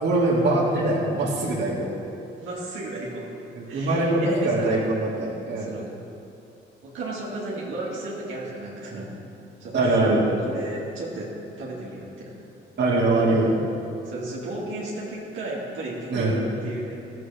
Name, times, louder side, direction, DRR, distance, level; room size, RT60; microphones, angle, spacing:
voice 1, 0.0-1.9 3.5-5.7 9.7-10.2 12.8-13.6 16.1-16.4, right 2 dB, 60° right, -5 dB, 2.1 m, -22 dB
voice 2, 2.4-3.3 3.7-4.8 5.6-5.8 6.8-9.1 9.6-11.3 11.6-12.3 14.0-17.1, right 2 dB, 80° right, -5 dB, 2.1 m, -34 dB
14.0 x 7.8 x 3.4 m, 2.7 s
cardioid pair, 90°, 20 cm